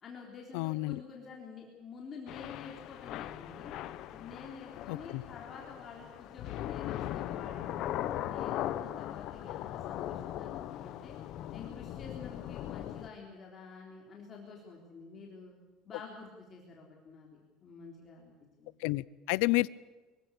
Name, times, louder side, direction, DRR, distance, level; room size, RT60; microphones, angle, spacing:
voice 1, 0.0-3.7 4.1-7.9 8.2-11.2 11.5-15.5 15.9-18.3 18.6-18.8, left 5 dB, 25° left, -1 dB, 3.6 m, -49 dB
voice 2, 0.5-1.0 4.9-5.2 18.8-19.7, left 22 dB, 75° left, 21 dB, 0.7 m, -30 dB
Thunder / Rain, 2.3-13.1, left 12 dB, 45° left, 1.1 m, -39 dB
25.0 x 16.5 x 8.5 m, 1.2 s
cardioid pair, 175°, 0 cm